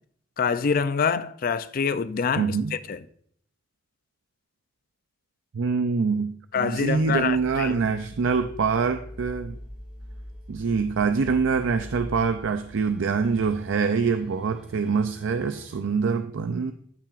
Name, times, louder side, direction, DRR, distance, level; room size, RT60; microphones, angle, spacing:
voice 1, 0.4-3.0 6.5-8.0, left 6 dB, 45° left, 0.4 m, -26 dB
voice 2, 2.4-2.7 5.5-9.6 10.5-16.7, right 5 dB, 75° right, 0.5 m, -25 dB
sound 1, 6.7-15.8, equal, 5° right, 2.5 m, -43 dB
13.5 x 5.8 x 2.5 m
head